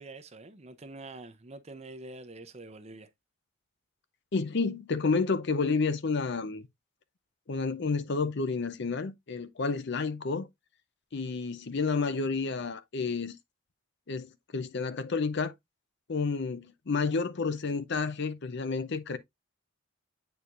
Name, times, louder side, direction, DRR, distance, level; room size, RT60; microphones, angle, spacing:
voice 1, 0.0-3.1, right 2 dB, 30° right, 0.6 m, -46 dB
voice 2, 4.3-6.7 7.5-10.5 11.1-13.4 14.1-15.5 16.1-19.2, left 4 dB, 55° left, 0.6 m, -30 dB
8.3 x 4.6 x 2.5 m
head